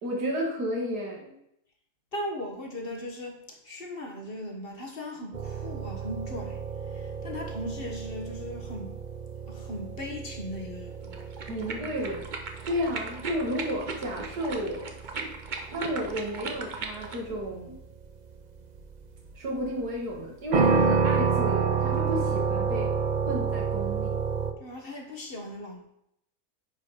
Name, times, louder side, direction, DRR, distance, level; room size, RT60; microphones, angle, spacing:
voice 1, 0.0-1.3 11.5-12.3 12.7-14.9 15.7-17.8 19.3-22.9 23.3-24.2, equal, 90° right, -1 dB, 2.4 m, -32 dB
voice 2, 2.1-3.4 3.6-6.6 6.9-8.9 9.5-11.3 24.6-25.8, left 1 dB, 40° left, 1 dB, 1.4 m, -38 dB
sound 1, 5.3-24.5, right 5 dB, 65° right, 0.4 m, -30 dB
sound 2, 11.0-17.2, right 4 dB, 40° right, 0.7 m, -38 dB
9.4 x 4.8 x 4.9 m, 0.77 s
omnidirectional pair, 1.6 m